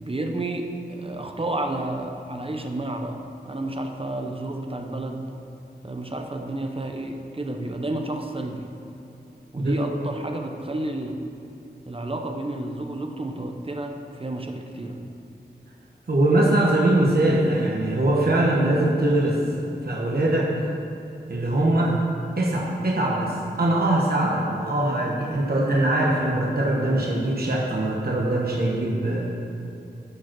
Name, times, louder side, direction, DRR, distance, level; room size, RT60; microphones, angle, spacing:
voice 1, 0.0-5.3 5.8-8.7 9.5-11.1 11.9-15.0, right 2 dB, 30° right, 4 dB, 0.8 m, -31 dB
voice 2, 16.1-19.4 19.8-20.5 21.3-22.0 22.4-29.2, right 1 dB, 60° right, -3 dB, 1.3 m, -22 dB
11.0 x 5.0 x 6.1 m, 2.8 s
wide cardioid pair, 80°, 18 cm